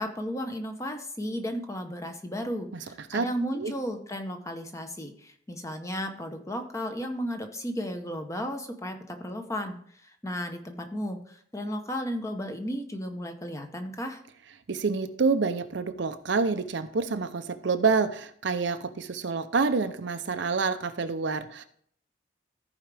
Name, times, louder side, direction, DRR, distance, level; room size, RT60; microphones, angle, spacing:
voice 1, 0.0-14.2, equal, 15° left, 5 dB, 0.8 m, -34 dB
voice 2, 14.7-21.6, right 4 dB, 60° right, 10 dB, 0.6 m, -27 dB
14.5 x 4.9 x 3.4 m, 0.63 s
head